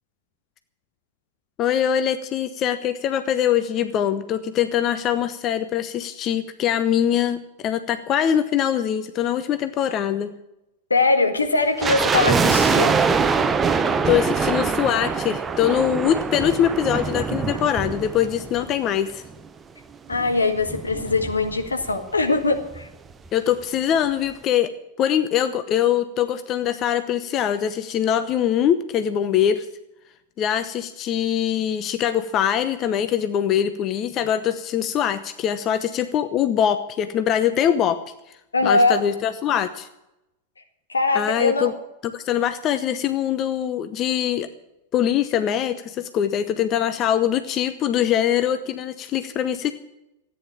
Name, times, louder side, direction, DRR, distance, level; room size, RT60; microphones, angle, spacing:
voice 1, 1.6-10.3 14.0-19.2 23.3-29.7 30.4-38.0 38.6-39.9 41.1-41.7 42.1-44.5 44.9-49.7, left 10 dB, 35° left, 11 dB, 0.8 m, -23 dB
voice 2, 10.9-13.2 20.1-22.9 38.5-39.0 40.9-41.7, left 3 dB, 75° left, 6 dB, 1.9 m, -21 dB
sound 1, 11.8-19.1 19.3-19.4 20.1-21.9 22.2-22.3 22.5-22.8 23.3-23.4, right 5 dB, 15° right, 0.8 m, -23 dB
14.0 x 9.5 x 8.6 m, 0.89 s
figure-of-eight pair, 90°, 0 cm